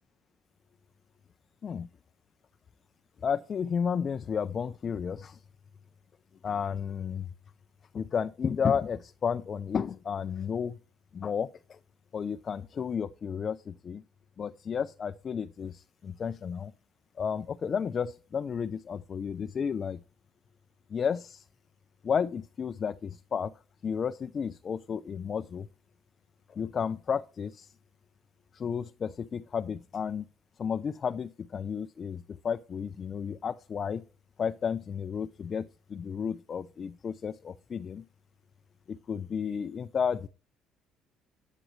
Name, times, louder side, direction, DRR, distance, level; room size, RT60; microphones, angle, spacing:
voice 1, 3.2-5.4 6.4-7.3 7.9-10.8 11.1-11.8 12.1-14.0 14.4-16.7 17.2-20.0 20.9-21.5 22.0-23.5 23.8-25.7 26.5-27.7 28.5-30.2 30.6-34.0 34.4-38.0 38.9-40.3, left 7 dB, 40° left, 0.4 m, -32 dB
13.5 x 9.2 x 3.1 m
cardioid pair, 95°, 0 cm